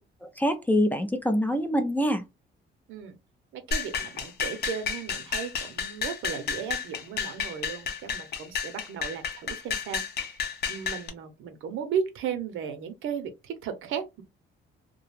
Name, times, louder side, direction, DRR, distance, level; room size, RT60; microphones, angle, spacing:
voice 1, 0.2-2.2, equal, 10° left, 0.3 m, -25 dB
voice 2, 3.5-10.0 10.3-10.4 10.7-14.2, right 7 dB, 90° right, 0.7 m, -35 dB
sound 1, 3.7-11.1, left 6 dB, 55° left, 0.6 m, -32 dB
2.4 x 2.2 x 3.1 m
cardioid pair, 140°, 20 cm